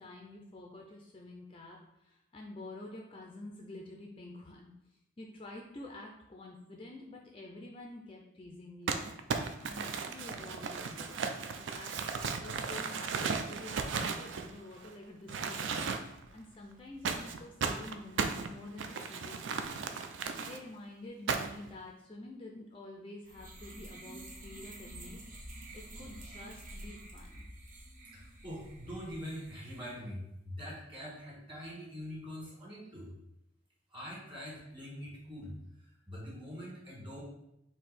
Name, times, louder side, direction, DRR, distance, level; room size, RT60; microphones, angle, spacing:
voice 1, 0.0-9.0 9.6-11.2 11.7-19.8 20.4-25.2 25.7-27.4, left 2 dB, 25° left, 0 dB, 0.4 m, -49 dB
Crumpling crinkling, 8.9-14.9 15.3-16.3 17.1-20.6 21.3-21.7, right 5 dB, 65° right, 0.4 m, -35 dB
sound 1, 23.2-29.9, right 1 dB, 40° right, 0.7 m, -49 dB
voice 2, 28.1-33.1 33.9-37.2, equal, 25° right, -5 dB, 1.6 m, -44 dB
4.4 x 2.8 x 4.1 m, 0.82 s
head